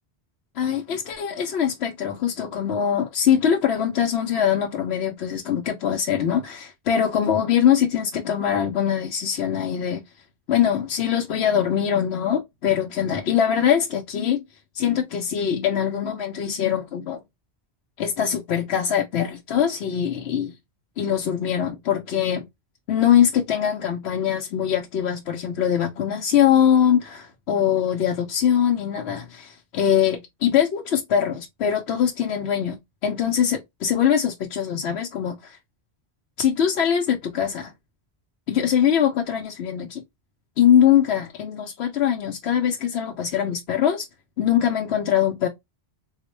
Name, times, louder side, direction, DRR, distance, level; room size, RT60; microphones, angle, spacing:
voice 1, 0.6-10.0 10.5-14.4 14.7-17.2 18.0-20.6 21.0-22.5 22.9-35.6 36.4-37.7 38.5-40.0 40.6-44.1 44.4-45.5, left 9 dB, 75° left, 0.9 m, -22 dB
3.9 x 2.1 x 3.0 m
omnidirectional pair, 1.1 m